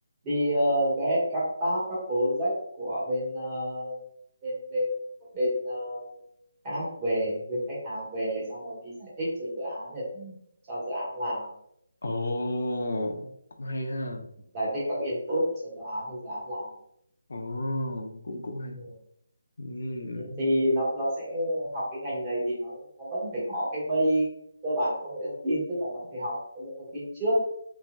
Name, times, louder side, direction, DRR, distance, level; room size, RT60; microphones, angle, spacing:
voice 1, 0.2-2.5 2.8-4.0 4.4-4.9 5.3-6.1 6.6-10.3 10.7-11.5 14.5-16.7 18.7-18.9 20.1-24.3 24.6-27.4, equal, 20° right, -8 dB, 1.5 m, -29 dB
voice 2, 12.0-13.3 13.6-14.2 17.3-18.8 19.6-20.4, left 1 dB, 75° left, 2 dB, 0.6 m, -32 dB
3.3 x 3.1 x 2.4 m, 0.73 s
hypercardioid pair, 165°, 0 cm